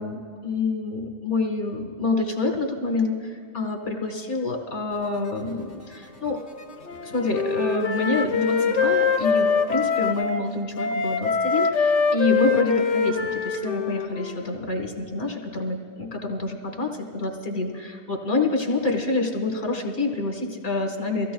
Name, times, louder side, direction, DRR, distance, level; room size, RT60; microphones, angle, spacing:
voice 1, 0.0-6.4 7.0-21.3, left 3 dB, 60° left, 3 dB, 1.8 m, -27 dB
sound 1, 4.9-10.2, left 2 dB, 45° left, 1.9 m, -49 dB
Wind instrument woodwind instrument, 6.8-10.4 10.8-14.5, left 5 dB, 85° left, 1.0 m, -24 dB
23.5 x 15.5 x 2.3 m, 2.1 s
omnidirectional pair, 1.2 m